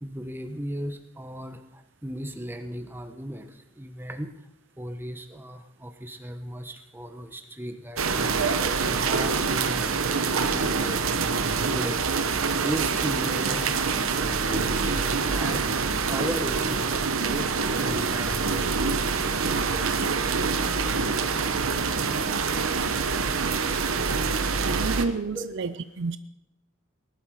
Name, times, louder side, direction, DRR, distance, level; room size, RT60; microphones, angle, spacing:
voice 1, 0.0-4.3 4.8-12.1 12.5-21.0 25.3-25.4, equal, 10° right, 7 dB, 1.1 m, -37 dB
sound 1, 8.0-25.1, right 5 dB, 75° right, 1.0 m, -25 dB
voice 2, 24.6-26.2, right 4 dB, 60° right, 13 dB, 0.5 m, -30 dB
18.5 x 11.5 x 4.8 m, 0.91 s
head